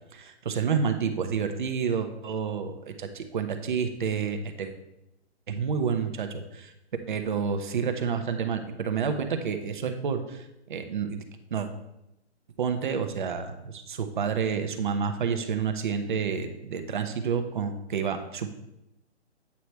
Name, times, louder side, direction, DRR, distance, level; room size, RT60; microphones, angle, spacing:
voice 1, 0.1-4.7 5.5-6.7 7.1-11.2 11.5-11.7 12.6-18.5, right 6 dB, 45° right, 7 dB, 0.7 m, -29 dB
8.3 x 3.0 x 4.5 m, 0.87 s
hypercardioid pair, 160°, 34 cm